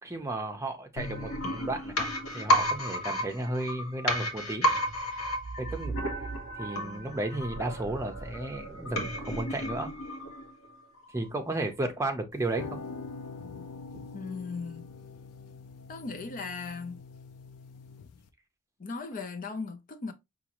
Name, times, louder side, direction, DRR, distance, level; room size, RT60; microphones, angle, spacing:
voice 1, 0.0-4.7 5.0-5.2 5.6-6.0 6.6-9.9 11.1-12.8 13.9-14.0, right 2 dB, 15° right, 0.7 m, -34 dB
sound 1, 1.0-10.7 11.0-11.1, equal, 65° left, 1.1 m, -32 dB
sound 2, 12.3-18.3, left 4 dB, 85° left, 0.5 m, -44 dB
voice 2, 14.1-14.9 15.9-17.0 18.8-20.1, left 4 dB, 35° left, 0.5 m, -37 dB
5.1 x 2.5 x 2.9 m
head